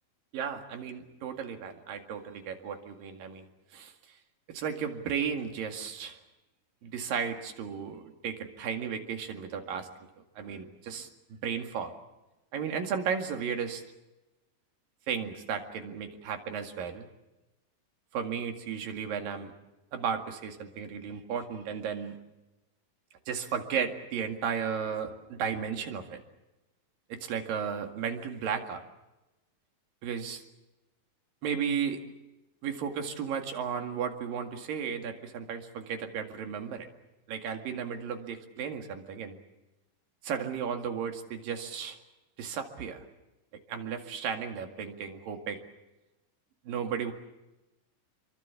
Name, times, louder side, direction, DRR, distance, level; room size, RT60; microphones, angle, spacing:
voice 1, 0.3-3.5 3.7-3.9 4.5-6.2 6.8-9.9 10.4-11.9 12.5-13.8 15.1-17.1 18.1-19.5 19.9-22.2 23.3-26.2 27.1-28.8 30.0-30.4 31.4-32.0 32.6-36.9 37.3-39.4 40.2-42.0 42.4-43.0 43.7-45.6 46.7-47.1, right 7 dB, 85° right, 5 dB, 3.8 m, -34 dB
28.5 x 23.5 x 7.2 m, 1.0 s
omnidirectional pair, 3.9 m